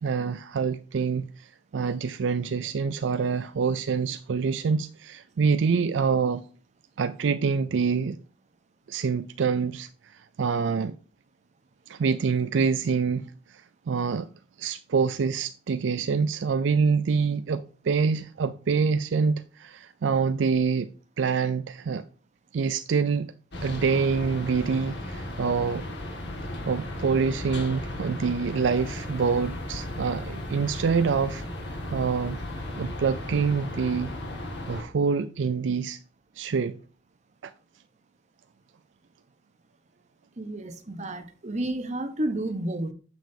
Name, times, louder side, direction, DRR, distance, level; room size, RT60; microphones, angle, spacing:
voice 1, 0.0-6.4 7.0-8.2 8.9-11.0 11.9-13.2 13.5-14.3 14.6-20.9 21.2-22.0 22.5-23.3 23.6-25.9 26.6-32.4 32.8-34.1 34.7-36.0 36.4-36.8 37.4-37.5, right 5 dB, 70° right, 0.4 m, -26 dB
sound 1, 23.5-34.8, left 1 dB, 60° left, 2.0 m, -35 dB
voice 2, 40.4-42.9, right 1 dB, 40° right, 1.0 m, -31 dB
9.1 x 7.2 x 2.8 m
head